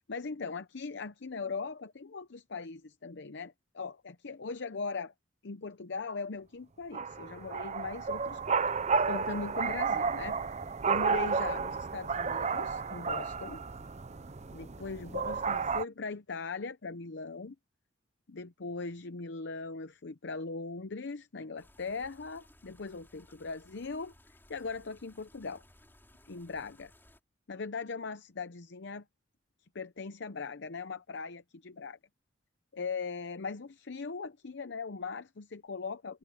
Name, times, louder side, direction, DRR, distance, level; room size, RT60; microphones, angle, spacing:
voice 1, 0.0-5.1 5.4-8.6 9.0-10.4 10.8-13.6 14.5-17.6 18.3-25.6 26.3-26.9 27.5-29.0 29.7-32.0 32.7-36.2, left 4 dB, 65° left, 0.7 m, -39 dB
sound 1, 6.9-15.9, right 5 dB, 35° right, 0.6 m, -32 dB
sound 2, 21.6-27.2, left 1 dB, 10° left, 4.7 m, -61 dB
head